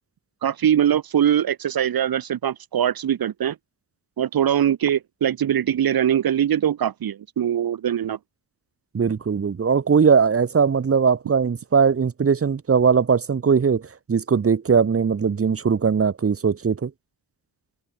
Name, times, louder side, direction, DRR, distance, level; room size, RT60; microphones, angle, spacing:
voice 1, 0.4-3.6 4.2-8.2, right 10 dB, 60° right, 4.1 m, -22 dB
voice 2, 8.9-16.9, right 6 dB, 35° right, 5.0 m, -20 dB
open air
wide cardioid pair, 170°, 41 cm